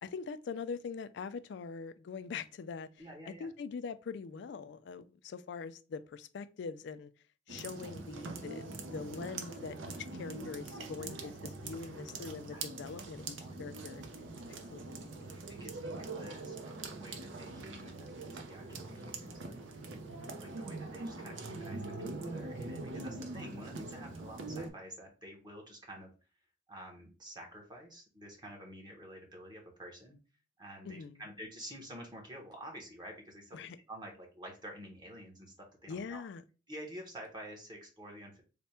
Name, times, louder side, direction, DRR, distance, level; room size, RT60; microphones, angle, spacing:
voice 1, 0.0-7.1 7.5-14.0 14.7-15.3 21.2-21.4 30.8-31.2 33.5-33.8 35.9-36.4, left 5 dB, 65° left, 0.3 m, -43 dB
voice 2, 3.0-3.5 12.5-12.6 13.4-13.7 15.3-19.9 20.4-26.1 26.7-30.2 30.6-33.6 33.9-36.2 36.7-38.4, equal, 25° right, 0.9 m, -49 dB
sound 1, 7.5-24.7, right 3 dB, 75° right, 0.6 m, -43 dB
3.3 x 2.1 x 4.2 m
head